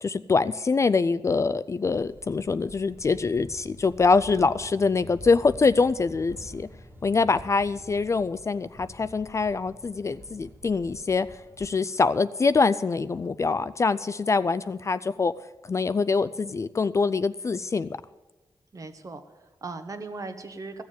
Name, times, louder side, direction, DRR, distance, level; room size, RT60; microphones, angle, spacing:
voice 1, 0.0-6.7 7.0-11.3 11.6-15.3 15.7-18.0, left 4 dB, 35° left, 14 dB, 0.4 m, -24 dB
sound 1, 1.9-11.7, left 1 dB, 20° right, 1.9 m, -47 dB
voice 2, 18.7-20.8, right 3 dB, 40° right, 8 dB, 1.2 m, -38 dB
15.0 x 7.1 x 9.2 m, 1.2 s
wide cardioid pair, 130°, 9 cm